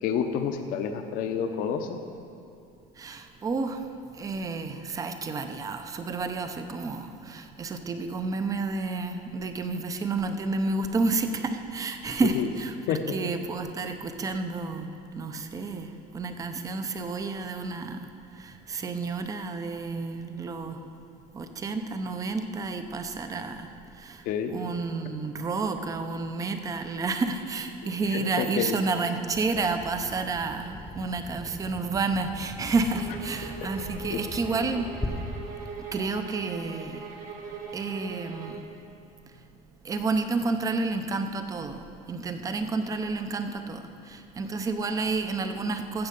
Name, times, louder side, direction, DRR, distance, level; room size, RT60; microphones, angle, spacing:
voice 1, 0.0-1.9 12.3-12.5 12.9-13.2 24.2-24.8 28.1-28.8 33.6-33.7 34.1-34.2, left 7 dB, 60° left, 7 dB, 0.9 m, -29 dB
voice 2, 3.0-3.8 4.2-18.1 18.4-20.8 21.3-23.7 23.9-24.2 24.5-34.9 35.9-37.0 37.7-38.7 39.8-41.8 42.1-46.1, right 3 dB, 20° right, 7 dB, 0.6 m, -30 dB
Bird vocalization bird call bird song, 29.3-35.1, left 2 dB, 10° left, 0.9 m, -41 dB
sound 1, 32.9-38.7, right 5 dB, 50° right, 1.6 m, -41 dB
14.5 x 7.5 x 5.3 m, 2.6 s
cardioid pair, 160°, 17 cm